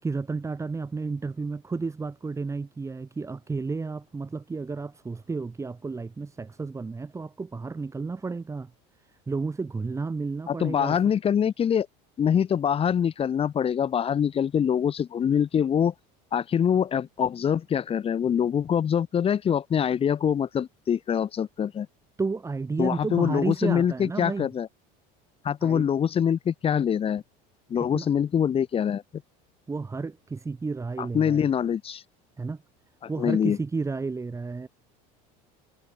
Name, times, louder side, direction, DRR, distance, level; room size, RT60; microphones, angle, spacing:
voice 1, 0.0-8.7 9.3-11.0 22.2-24.5 25.6-25.9 27.8-28.1 29.7-31.4 32.4-32.6 33.1-34.7, right 4 dB, 15° right, 5.7 m, -32 dB
voice 2, 10.5-11.9 12.2-15.9 16.3-21.9 22.8-24.7 25.4-27.2 27.7-29.0 31.0-32.0 33.2-33.6, left 8 dB, 30° left, 2.8 m, -24 dB
supercardioid pair, 130°, 19 cm